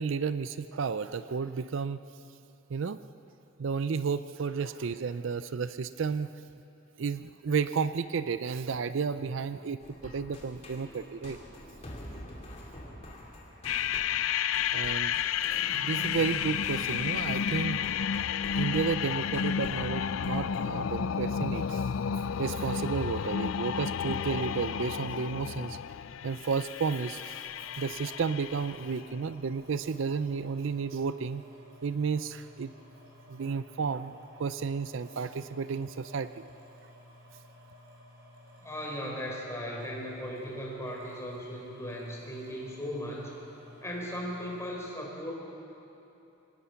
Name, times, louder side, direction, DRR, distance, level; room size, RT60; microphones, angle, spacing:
voice 1, 0.0-2.0 2.7-3.0 3.6-6.3 7.0-11.4 14.7-15.2 15.4-17.8 18.5-21.9 22.4-25.8 26.2-27.4 27.8-31.4 31.8-32.7 33.3-36.4, right 5 dB, 65° right, 13 dB, 0.4 m, -32 dB
sound 1, 9.8-20.8, left 1 dB, 30° left, 2.7 m, -47 dB
sound 2, 13.6-29.0, left 8 dB, 75° left, 0.4 m, -31 dB
sound 3, 27.2-44.7, left 1 dB, 80° right, 5.4 m, -54 dB
voice 2, 38.6-43.3 43.8-45.4, equal, 15° left, -2 dB, 4.0 m, -37 dB
24.5 x 19.5 x 5.8 m, 2.9 s
head